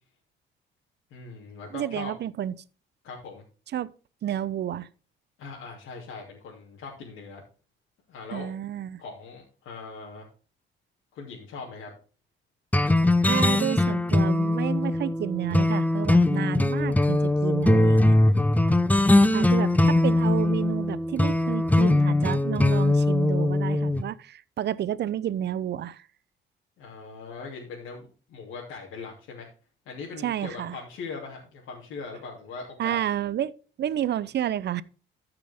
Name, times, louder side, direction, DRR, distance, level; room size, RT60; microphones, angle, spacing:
voice 1, 1.1-2.1 3.0-3.4 5.4-7.4 8.1-8.5 9.0-10.3 11.1-11.9 26.8-29.5 29.8-33.0, left 4 dB, 85° left, 2.9 m, -40 dB
voice 2, 1.7-2.6 3.7-3.9 4.2-4.9 8.3-9.0 13.3-18.2 19.3-26.1 30.2-30.8 32.8-34.8, right 11 dB, 60° right, 0.7 m, -30 dB
sound 1, 12.7-24.0, left 2 dB, 10° left, 0.8 m, -21 dB
14.0 x 6.0 x 3.6 m
cardioid pair, 90°, 20 cm